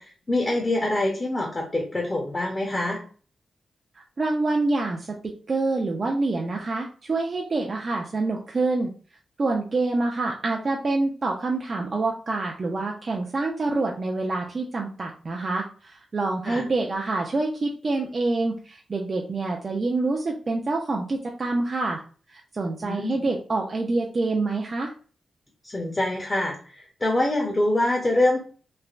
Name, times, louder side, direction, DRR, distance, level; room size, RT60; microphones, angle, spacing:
voice 1, 0.0-3.0 16.5-16.6 22.8-23.2 25.6-28.4, left 1 dB, 25° left, 0 dB, 0.6 m, -25 dB
voice 2, 4.0-8.9 9.4-22.0 22.5-24.9, right 3 dB, 40° right, 0 dB, 0.4 m, -26 dB
3.1 x 2.0 x 2.4 m, 0.41 s
wide cardioid pair, 110°, 0 cm